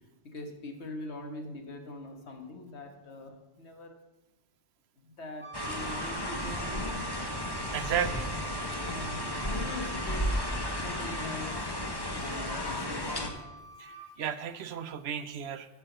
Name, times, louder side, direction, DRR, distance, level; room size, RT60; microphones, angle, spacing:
voice 1, 0.2-4.0 5.0-7.0 8.8-10.3 10.8-11.6 12.1-13.4, left 2 dB, 75° left, 4 dB, 1.7 m, -42 dB
Wind instrument woodwind instrument, 5.4-14.1, right 7 dB, 60° left, 2.8 m, -44 dB
sound 1, 5.5-13.3, left 1 dB, 20° left, 1.1 m, -34 dB
voice 2, 7.7-8.3 13.8-13.9 14.2-15.7, right 8 dB, 75° right, 12 dB, 0.9 m, -33 dB
13.0 x 5.6 x 6.7 m, 1.0 s
omnidirectional pair, 1.1 m